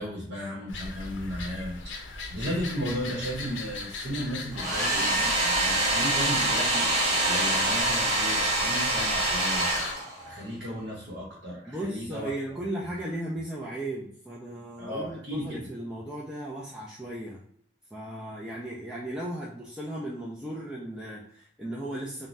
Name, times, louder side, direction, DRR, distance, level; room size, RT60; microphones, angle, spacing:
voice 1, 0.0-6.9 7.2-9.7 10.0-12.3 12.8-13.0 14.8-15.7, equal, 65° right, -4 dB, 0.9 m, -35 dB
sound 1, 0.7-9.9, left 3 dB, 80° left, 0.5 m, -38 dB
Domestic sounds home sounds, 4.5-10.4, right 2 dB, 40° right, 0.8 m, -25 dB
voice 2, 11.7-17.4 17.9-22.3, right 1 dB, 5° right, -6 dB, 0.3 m, -36 dB
2.5 x 2.1 x 3.1 m, 0.63 s
head